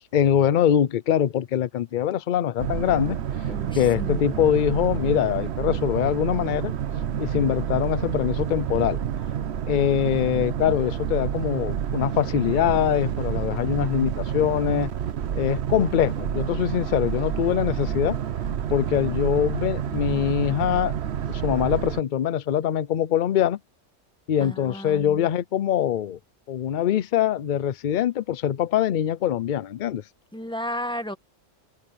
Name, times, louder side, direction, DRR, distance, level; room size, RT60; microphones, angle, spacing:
voice 1, 0.1-3.2 3.8-6.7 7.2-9.0 9.7-14.9 15.3-18.2 18.7-20.9 21.3-23.6 24.3-26.2 26.5-30.0, left 10 dB, 50° left, 0.6 m, -23 dB
Boat Water vehicle, 2.6-22.0, right 9 dB, 65° right, 1.0 m, -29 dB
voice 2, 3.5-4.3 24.4-25.3 30.3-31.2, equal, 5° left, 1.4 m, -33 dB
open air
omnidirectional pair, 1.3 m